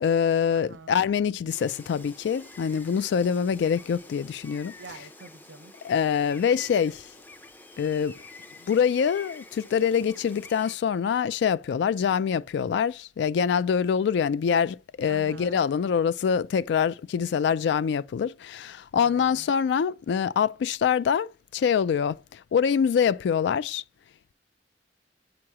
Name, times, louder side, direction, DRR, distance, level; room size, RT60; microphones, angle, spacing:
voice 1, 0.0-4.7 5.8-7.0 7.8-8.2 8.7-23.8, left 7 dB, 70° left, 0.3 m, -25 dB
voice 2, 0.5-1.0 4.8-5.7 15.1-15.6 19.0-19.5, right 3 dB, 90° right, 0.7 m, -46 dB
Gull seagull, 1.5-10.8, left 2 dB, 10° left, 0.5 m, -48 dB
8.5 x 2.9 x 4.8 m
head